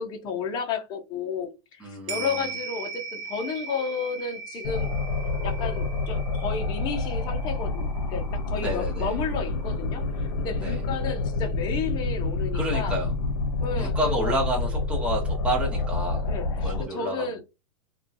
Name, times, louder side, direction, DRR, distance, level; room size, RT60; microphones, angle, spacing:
voice 1, 0.0-4.9 5.4-13.0 13.6-14.4 16.3-17.4, left 5 dB, 25° left, 0.5 m, -32 dB
voice 2, 1.8-2.4 8.6-9.1 10.6-10.8 12.5-13.1 13.7-16.3 16.6-17.3, equal, 5° right, 0.9 m, -29 dB
sound 1, 2.1-10.6 11.0-11.1, right 5 dB, 60° right, 0.9 m, -40 dB
sound 2, 4.6-16.8, left 2 dB, 60° left, 0.8 m, -28 dB
2.7 x 2.2 x 2.5 m
supercardioid pair, 150°, 19 cm